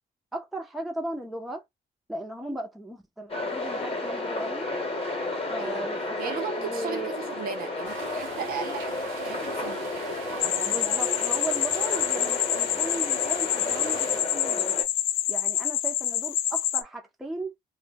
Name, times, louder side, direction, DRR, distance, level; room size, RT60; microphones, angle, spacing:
voice 1, 0.3-1.6 2.1-4.7 5.5-7.1 10.7-14.7 15.3-17.5, right 1 dB, ahead, 0.5 m, -37 dB
sound 1, 3.3-14.8, left 2 dB, 30° left, 1.0 m, -32 dB
voice 2, 5.6-5.9 6.2-10.8, right 6 dB, 50° right, 0.6 m, -37 dB
sound 2, 7.8-14.2, right 8 dB, 85° right, 0.7 m, -44 dB
sound 3, 10.4-16.8, left 12 dB, 80° left, 0.4 m, -27 dB
2.2 x 2.1 x 3.3 m
cardioid pair, 90°, 20 cm